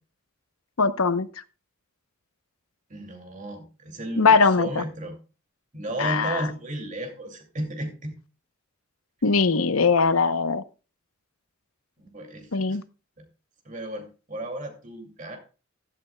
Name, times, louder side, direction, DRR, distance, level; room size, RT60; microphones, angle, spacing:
voice 1, 0.8-1.3 4.2-4.8 6.0-6.4 9.2-10.6 12.5-12.8, left 4 dB, 90° left, 13 dB, 0.8 m, -21 dB
voice 2, 2.9-5.2 5.7-8.2 12.0-12.8 13.2-13.3 13.6-15.4, right 1 dB, 35° right, 4 dB, 2.5 m, -34 dB
15.0 x 12.0 x 2.3 m, 0.33 s
head